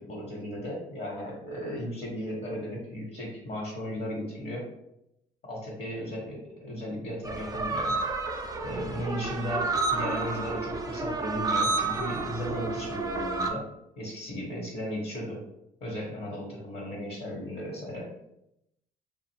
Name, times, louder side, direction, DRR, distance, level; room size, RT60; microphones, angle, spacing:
voice 1, 0.0-4.7 5.5-7.9 8.6-13.6 14.0-15.4 15.8-18.1, equal, 50° left, -3 dB, 1.1 m, -35 dB
sound 1, 7.2-13.5, right 3 dB, 20° right, 0.4 m, -30 dB
2.4 x 2.0 x 3.2 m, 0.81 s
hypercardioid pair, 60°, 20 cm